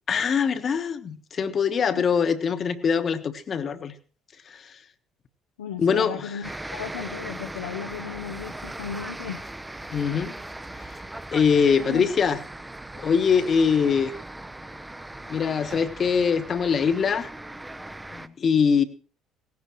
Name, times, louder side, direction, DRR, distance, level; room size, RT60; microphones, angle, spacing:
voice 1, 0.1-3.9 5.8-6.3 9.9-10.4 11.3-12.4 13.0-14.1 15.3-17.3 18.1-18.8, left 6 dB, 40° left, 11 dB, 1.3 m, -23 dB
voice 2, 1.8-2.3 5.6-9.5 11.9-12.1, left 7 dB, 75° left, 4 dB, 0.8 m, -35 dB
sound 1, 6.4-18.3, right 1 dB, 10° right, 0.8 m, -39 dB
18.0 x 15.5 x 3.1 m, 0.39 s
figure-of-eight pair, 55°, 0 cm